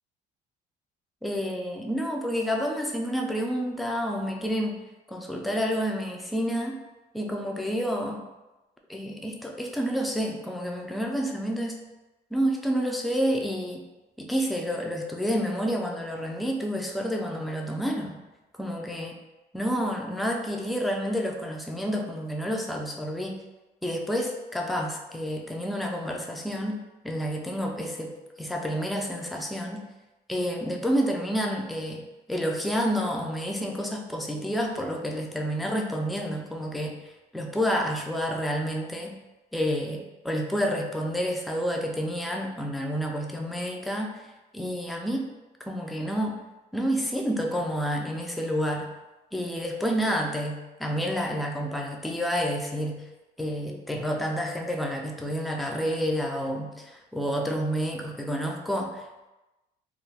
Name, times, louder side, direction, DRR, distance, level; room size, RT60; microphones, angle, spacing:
voice 1, 1.2-6.8 7.1-8.3 8.9-11.8 12.3-13.8 14.2-18.2 18.6-19.2 19.5-23.4 23.8-29.9 30.3-37.0 37.3-39.2 39.5-45.3 45.6-46.4 46.7-48.9 49.3-53.0 53.4-59.3, equal, ahead, 1 dB, 0.3 m, -29 dB
2.4 x 2.1 x 3.3 m, 1.0 s
cardioid pair, 110°, 17 cm